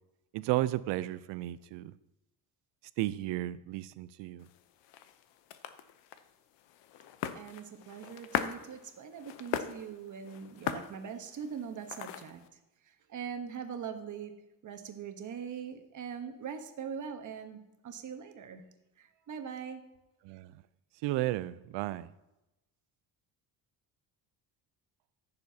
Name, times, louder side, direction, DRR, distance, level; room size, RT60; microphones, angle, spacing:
voice 1, 0.3-1.9 3.0-4.5 20.3-20.5 21.0-22.1, right 16 dB, 85° right, 0.6 m, -33 dB
sound 1, 4.4-12.5, left 10 dB, 90° left, 0.8 m, -40 dB
voice 2, 7.3-12.6 12.8-14.3 14.6-18.6 19.0-19.8, right 7 dB, 45° right, 1.1 m, -42 dB
14.5 x 6.9 x 2.8 m
cardioid pair, 125°, 42 cm